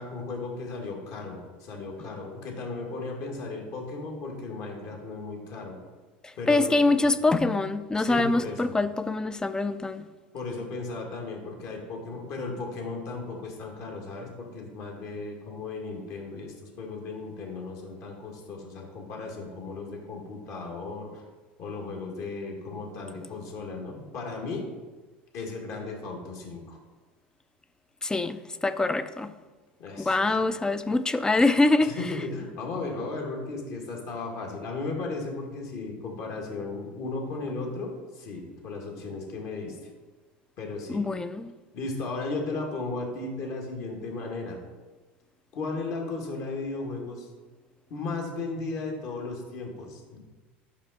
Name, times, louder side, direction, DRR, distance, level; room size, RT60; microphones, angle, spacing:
voice 1, 0.0-5.7 6.4-7.0 8.0-8.7 10.3-21.2 21.6-24.7 25.3-26.8 29.8-30.3 31.8-39.8 40.6-41.0 41.7-44.6 45.5-47.3 47.9-50.2, left 3 dB, 55° left, 1.6 m, -35 dB
voice 2, 6.2-10.1 28.0-29.3 30.0-31.9 40.9-41.5, left 2 dB, 10° left, 0.3 m, -24 dB
5.5 x 5.2 x 4.0 m
hypercardioid pair, 85°, 6 cm